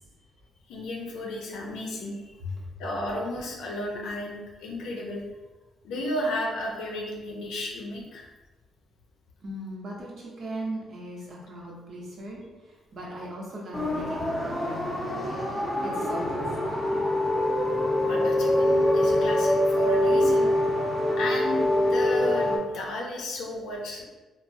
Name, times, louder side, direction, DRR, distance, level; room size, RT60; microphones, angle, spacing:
voice 1, 0.7-2.3 2.8-5.2 5.8-8.3 17.7-20.5 21.2-24.0, left 1 dB, 85° left, -1 dB, 0.5 m, -33 dB
voice 2, 2.4-2.7 9.4-17.1, equal, 60° right, -3 dB, 0.8 m, -39 dB
sound 1, 13.7-22.6, left 1 dB, 15° left, 0.6 m, -24 dB
3.0 x 2.0 x 2.6 m, 1.2 s
cardioid pair, 90°, 0 cm